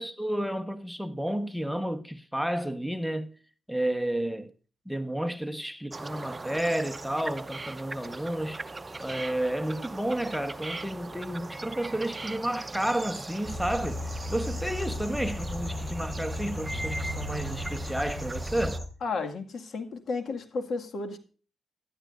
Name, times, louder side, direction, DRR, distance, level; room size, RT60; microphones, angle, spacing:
voice 1, 0.0-3.3 3.7-4.5 4.9-8.6 9.0-14.0 14.3-18.8, right 1 dB, ahead, 1.1 m, -31 dB
sound 1, 5.9-18.8, right 2 dB, 25° right, 0.7 m, -40 dB
sound 2, 13.4-18.9, left 1 dB, 20° left, 3.7 m, -35 dB
voice 2, 19.0-21.2, left 4 dB, 65° left, 2.0 m, -33 dB
16.5 x 11.5 x 2.6 m
cardioid pair, 60°, 0 cm